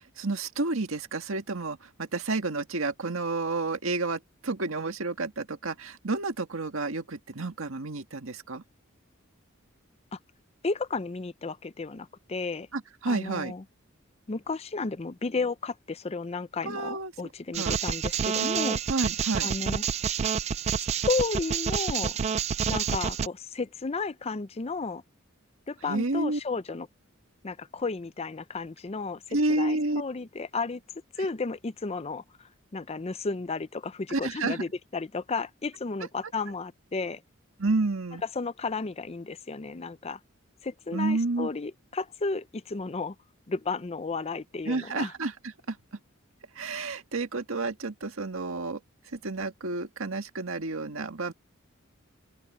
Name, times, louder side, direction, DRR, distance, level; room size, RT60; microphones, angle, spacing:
voice 1, 0.2-8.6 12.7-13.5 16.7-17.1 17.6-17.8 18.9-19.5 25.9-26.4 29.3-30.0 31.2-31.3 34.1-34.6 37.6-38.2 40.9-41.5 44.7-45.8 46.6-48.8 49.1-51.3, right 3 dB, 80° right, 1.7 m, -30 dB
voice 2, 10.6-12.7 13.1-13.6 14.3-18.8 19.4-19.8 20.8-22.2 22.7-25.0 25.7-26.9 27.4-30.8 31.2-37.2 38.3-40.2 40.6-43.2 43.5-45.1, left 4 dB, 30° left, 0.5 m, -33 dB
sound 1, 17.5-23.3, right 7 dB, 30° right, 0.3 m, -28 dB
open air
head